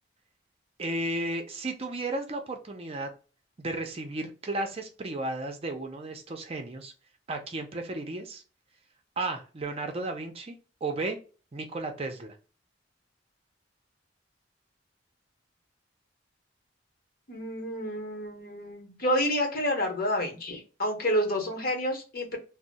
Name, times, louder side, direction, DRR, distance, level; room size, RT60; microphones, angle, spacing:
voice 1, 0.8-3.1 3.6-6.9 7.3-8.4 9.2-10.6 10.8-11.2 11.5-12.4, right 2 dB, 35° right, 4 dB, 0.5 m, -34 dB
voice 2, 17.3-22.4, equal, 50° left, 3 dB, 1.0 m, -29 dB
2.7 x 2.0 x 3.9 m, 0.35 s
head